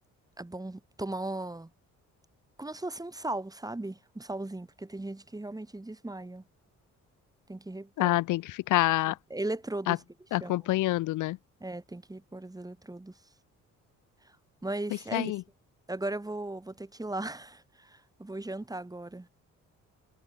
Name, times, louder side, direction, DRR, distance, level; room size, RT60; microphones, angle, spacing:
voice 1, 0.4-1.7 2.6-6.4 7.5-8.2 9.3-10.0 10.4-10.5 11.6-13.1 14.2-14.4 14.6-15.3 15.9-19.3, right 2 dB, 10° right, 3.7 m, -37 dB
voice 2, 8.0-9.2 9.9-10.0 10.3-11.4 15.1-15.4, left 17 dB, 90° left, 1.0 m, -27 dB
cardioid pair, 90°, 30 cm